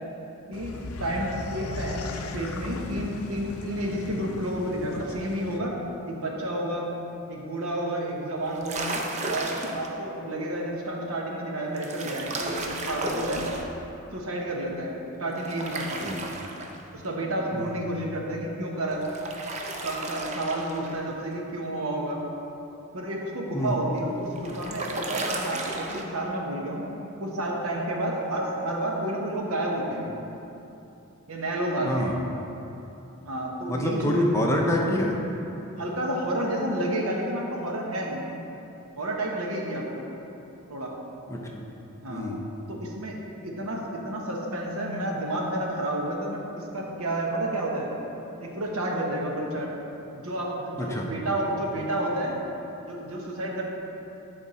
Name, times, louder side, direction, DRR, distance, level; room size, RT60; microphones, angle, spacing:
sound 1, 0.5-5.6, left 3 dB, 85° left, 0.5 m, -37 dB
voice 1, 0.5-2.1 2.3-5.7 6.0-6.9 7.3-8.9 9.3-13.4 14.1-16.1 16.9-19.0 19.8-22.2 22.9-26.8 27.2-30.1 31.3-32.2 33.2-34.3 35.8-38.2 39.0-40.0 40.7-40.9 42.0-42.3 42.7-43.1 43.4-47.9 48.4-49.7 50.1-52.4 52.9-53.6, right 1 dB, 85° right, -1 dB, 1.1 m, -30 dB
sound 2, 8.4-9.9 11.8-13.7 15.4-17.1 18.9-21.1 24.0-26.0, right 2 dB, 30° right, 0.5 m, -34 dB
voice 2, 31.8-32.1 33.7-35.2 41.3-41.6 42.1-42.4 50.8-51.1, left 1 dB, 15° left, -1 dB, 0.5 m, -26 dB
10.5 x 3.6 x 4.2 m, 3.0 s
head